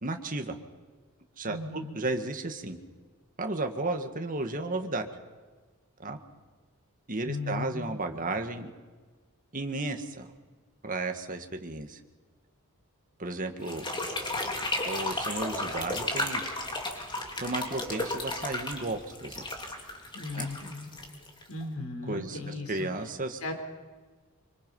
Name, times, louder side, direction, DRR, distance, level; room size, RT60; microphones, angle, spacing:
voice 1, 0.0-0.6 1.4-2.8 3.4-5.1 6.0-6.2 7.1-8.7 9.5-10.3 10.8-12.0 13.2-13.9 14.8-16.4 17.4-19.4 20.3-20.5 22.1-22.4 22.7-23.5, right 2 dB, 40° right, 5 dB, 1.9 m, -33 dB
voice 2, 1.4-2.0 7.2-8.0 20.1-21.0 21.5-22.9 23.4-23.5, left 2 dB, 85° left, 4 dB, 4.3 m, -37 dB
sound 1, 13.6-21.6, left 2 dB, 20° left, 3.1 m, -33 dB
25.5 x 25.5 x 5.6 m, 1.4 s
head